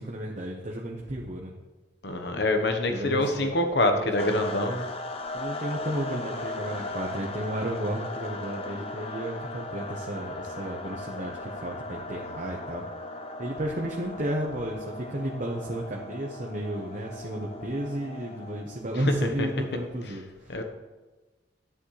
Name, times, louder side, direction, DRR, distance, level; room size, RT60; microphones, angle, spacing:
voice 1, 0.0-1.5 2.9-3.5 3.9-4.3 4.6-4.8 5.3-12.9 13.4-20.6, right 1 dB, 45° right, -1 dB, 1.0 m, -33 dB
voice 2, 2.0-4.9 19.4-19.5 20.5-20.6, left 2 dB, 65° left, 5 dB, 1.2 m, -25 dB
sound 1, 4.2-18.9, left 2 dB, 35° left, 0.7 m, -38 dB
11.0 x 10.0 x 3.3 m, 1.2 s
head